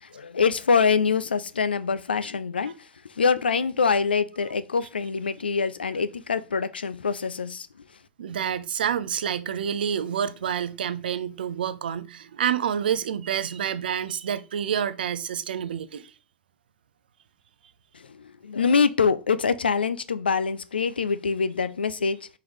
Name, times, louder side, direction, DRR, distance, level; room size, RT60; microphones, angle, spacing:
voice 1, 0.0-7.7 17.9-22.3, left 5 dB, 80° left, 0.4 m, -25 dB
voice 2, 8.2-16.1, right 8 dB, 70° right, 0.4 m, -28 dB
4.6 x 3.7 x 2.9 m
figure-of-eight pair, 85°, 5 cm